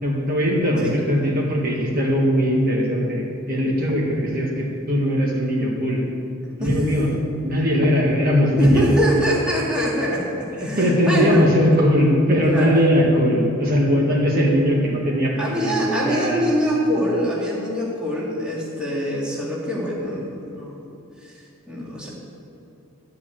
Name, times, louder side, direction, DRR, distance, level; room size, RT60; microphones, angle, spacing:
voice 1, 0.0-6.0 6.6-7.1 7.4-8.9 10.6-16.5, equal, 40° right, -3 dB, 1.7 m, -20 dB
voice 2, 8.6-11.5 12.5-12.9 15.4-20.8 21.2-21.3 21.7-22.1, equal, 5° right, -6 dB, 1.9 m, -24 dB
13.0 x 4.8 x 8.8 m, 2.7 s
head